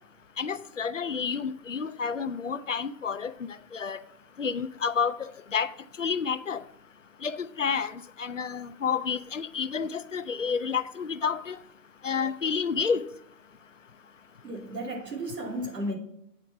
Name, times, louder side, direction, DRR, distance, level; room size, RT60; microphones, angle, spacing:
voice 1, 0.4-3.3 3.7-4.0 4.4-5.2 5.5-5.7 6.0-6.6 7.2-11.6 12.0-13.0, left 6 dB, 50° left, 0.5 m, -29 dB
voice 2, 14.4-15.9, right 1 dB, 70° right, 2.9 m, -34 dB
8.7 x 4.4 x 6.9 m
hypercardioid pair, 170°, 49 cm